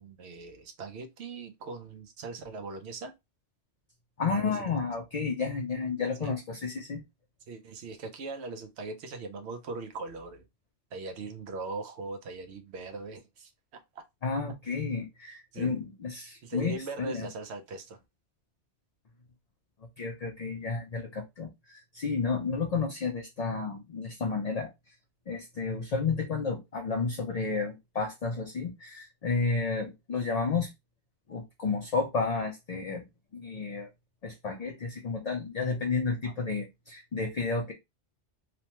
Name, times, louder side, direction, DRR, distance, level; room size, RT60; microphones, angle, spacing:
voice 1, 0.0-3.1 4.2-4.7 6.2-6.3 7.5-10.5 10.9-14.0 15.5-15.8 16.4-18.0 36.2-36.3, right 3 dB, 70° right, 0.9 m, -40 dB
voice 2, 4.2-7.0 14.2-17.3 20.0-24.7 25.3-30.7 31.3-33.0 33.3-33.9 34.2-37.7, left 4 dB, 55° left, 0.4 m, -31 dB
3.1 x 2.1 x 2.9 m
omnidirectional pair, 1.2 m